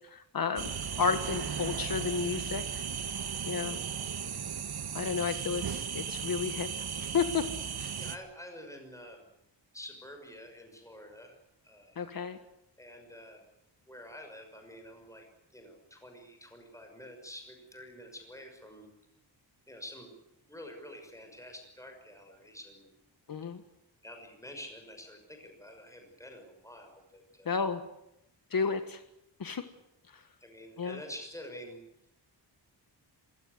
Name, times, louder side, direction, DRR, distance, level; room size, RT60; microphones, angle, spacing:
voice 1, 0.0-2.8 3.5-3.8 4.9-6.7 7.0-7.4 7.8-7.9 12.0-12.4 23.3-23.6 27.4-27.8 28.5-29.0 29.4-29.6 30.8-31.0, left 5 dB, 50° left, 9 dB, 1.6 m, -32 dB
sound 1, 0.6-8.2, right 7 dB, 55° right, 1.7 m, -36 dB
voice 2, 8.0-9.3 9.7-11.4 11.6-12.0 12.8-13.4 13.9-18.9 19.7-22.9 24.0-27.6 28.5-28.9 30.4-31.8, left 1 dB, 5° left, 4 dB, 6.1 m, -48 dB
27.0 x 16.5 x 9.7 m, 0.83 s
wide cardioid pair, 145°, 44 cm